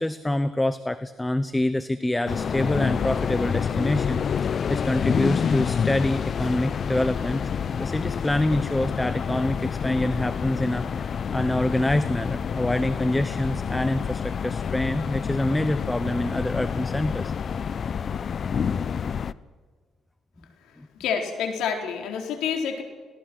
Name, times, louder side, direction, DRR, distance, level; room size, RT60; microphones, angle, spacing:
voice 1, 0.0-7.4 7.7-17.3 20.8-20.9, left 1 dB, 10° left, 13 dB, 1.0 m, -26 dB
sound 1, 2.3-19.3, left 7 dB, 50° left, 0.7 m, -28 dB
voice 2, 21.0-22.8, left 7 dB, 85° left, 4 dB, 3.9 m, -28 dB
26.0 x 18.5 x 6.2 m, 1.5 s
cardioid pair, 90°, 0 cm